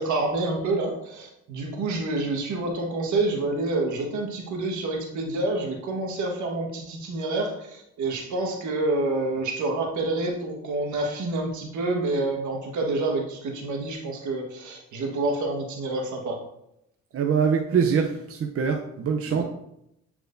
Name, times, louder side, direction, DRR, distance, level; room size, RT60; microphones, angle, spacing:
voice 1, 0.0-16.4 19.3-19.4, right 2 dB, 75° right, 1 dB, 1.5 m, -28 dB
voice 2, 17.1-19.4, right 6 dB, 50° right, 1 dB, 0.7 m, -24 dB
8.8 x 4.6 x 2.6 m, 0.79 s
cardioid pair, 90°, 30 cm